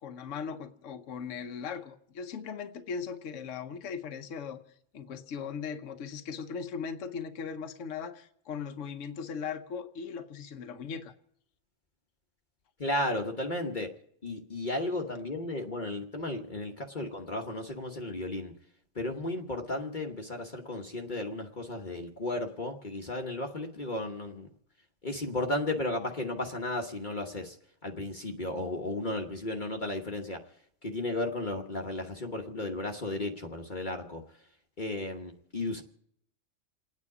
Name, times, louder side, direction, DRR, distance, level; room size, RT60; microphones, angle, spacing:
voice 1, 0.0-4.6 4.9-11.1, left 6 dB, 75° left, 9 dB, 1.2 m, -38 dB
voice 2, 12.8-13.9 14.2-18.5 18.9-24.5 25.0-27.6 27.8-30.4 30.8-34.2 34.8-35.8, left 2 dB, 40° left, 2 dB, 1.2 m, -34 dB
28.5 x 9.7 x 4.8 m, 0.70 s
omnidirectional pair, 1.3 m